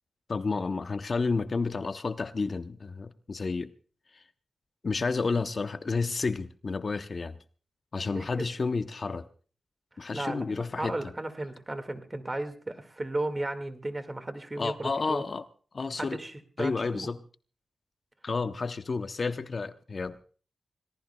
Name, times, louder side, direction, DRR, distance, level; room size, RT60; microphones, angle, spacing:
voice 1, 0.3-3.7 4.1-4.2 4.8-7.4 7.9-9.2 10.0-10.9 14.6-15.4 15.7-16.2 16.6-17.2 18.2-20.2, left 4 dB, 55° left, 0.7 m, -31 dB
voice 2, 8.1-8.5 10.0-15.2 16.0-17.1, right 2 dB, 30° right, 1.9 m, -35 dB
26.5 x 18.0 x 2.3 m
cardioid pair, 55°, 0 cm